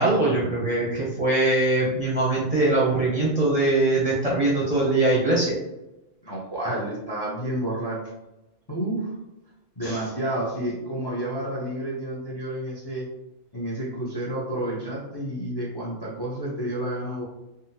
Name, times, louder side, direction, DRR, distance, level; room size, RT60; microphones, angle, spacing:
voice 1, 0.0-5.5 9.8-10.0, right 2 dB, 40° right, -6 dB, 0.6 m, -22 dB
voice 2, 6.2-8.0 8.7-9.1 9.8-13.1 13.5-17.2, right 1 dB, 25° left, -5 dB, 0.5 m, -30 dB
3.7 x 2.1 x 2.7 m, 0.96 s
omnidirectional pair, 1.3 m